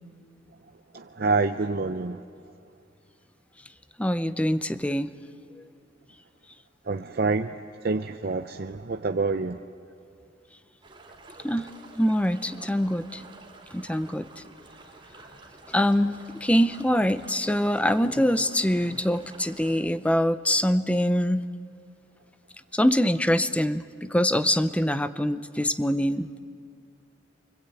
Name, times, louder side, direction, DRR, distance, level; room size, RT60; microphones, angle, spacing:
voice 1, 0.9-2.2 6.9-9.6, right 3 dB, 55° right, 6 dB, 0.6 m, -27 dB
voice 2, 4.0-5.1 5.6-5.7 11.4-11.7 12.0-13.2 13.7-14.3 15.7-21.4 22.7-26.4, equal, 5° left, 12 dB, 0.6 m, -24 dB
sound 1, 10.8-19.8, right 2 dB, 25° right, 3.2 m, -49 dB
29.0 x 24.5 x 8.4 m, 2.4 s
head